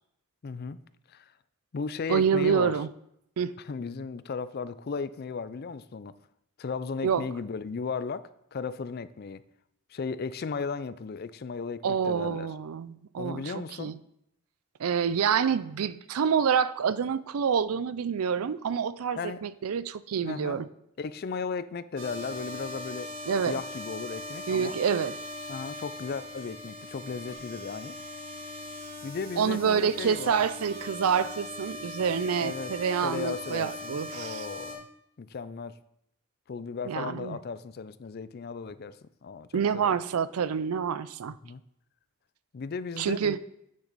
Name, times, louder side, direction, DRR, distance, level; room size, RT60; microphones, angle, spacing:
voice 1, 0.4-0.8 1.1-1.3 1.7-2.7 3.6-6.1 6.6-9.4 9.9-12.5 13.2-13.9 19.1-19.4 20.2-20.6 21.0-23.1 23.4-24.8 25.5-27.9 29.0-30.5 32.4-32.7 33.0-34.8 35.2-35.8 36.5-40.0 41.3-41.6 42.5-43.4, left 5 dB, 45° left, 15 dB, 0.4 m, -36 dB
voice 2, 2.1-2.9 3.4-3.5 7.0-7.2 11.8-13.5 13.8-14.0 14.8-20.7 23.3-23.6 24.5-25.1 29.4-34.5 36.9-37.4 39.5-41.4 43.0-43.4, right 7 dB, 80° right, 17 dB, 0.4 m, -27 dB
sound 1, 22.0-34.7, left 1 dB, 60° right, 2.2 m, -40 dB
8.9 x 6.6 x 4.1 m, 0.77 s
head